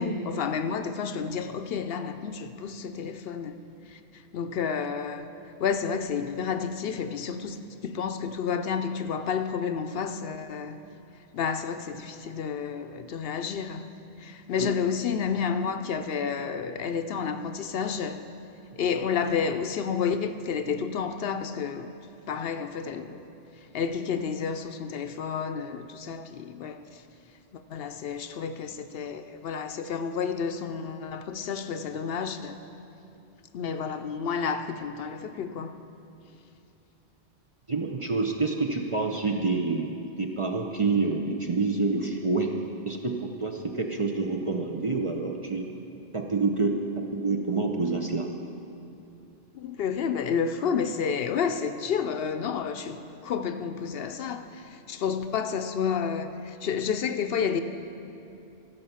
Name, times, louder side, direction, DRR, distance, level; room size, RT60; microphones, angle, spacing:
voice 1, 0.0-3.6 3.9-5.3 5.6-7.6 7.8-10.8 11.3-13.9 14.2-18.2 18.8-21.9 22.3-23.3 23.7-27.0 27.5-32.6 33.5-35.7 49.5-57.6, left 6 dB, 65° left, 9 dB, 0.7 m, -30 dB
voice 2, 37.7-42.5 42.8-45.7 46.1-48.3, right 3 dB, 40° right, 2 dB, 0.5 m, -27 dB
15.0 x 6.8 x 5.6 m, 2.7 s
omnidirectional pair, 1.1 m